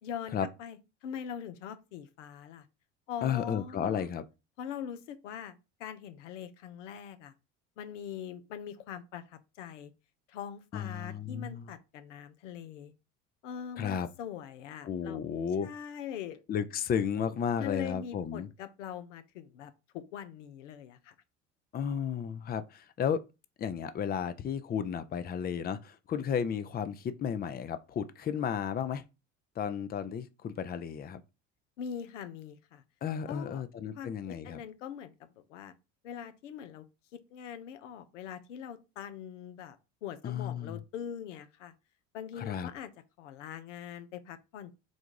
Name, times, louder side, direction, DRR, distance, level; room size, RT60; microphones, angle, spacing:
voice 1, 0.0-2.7 3.1-4.1 4.6-7.3 7.8-9.9 10.3-12.9 13.4-15.2 15.6-16.4 17.6-21.1 31.8-32.8 33.3-33.6 34.0-35.7 36.0-36.9 37.1-41.7 42.1-42.9 43.2-44.7, left 9 dB, 85° left, 0.6 m, -42 dB
voice 2, 3.2-4.2 10.7-11.7 13.8-14.1 14.8-15.7 16.5-18.5 21.7-23.2 23.6-29.0 29.6-31.2 33.0-34.6 40.2-40.8 42.4-42.7, left 8 dB, 25° left, 0.5 m, -33 dB
3.9 x 2.4 x 4.7 m
hypercardioid pair, 75°, 36 cm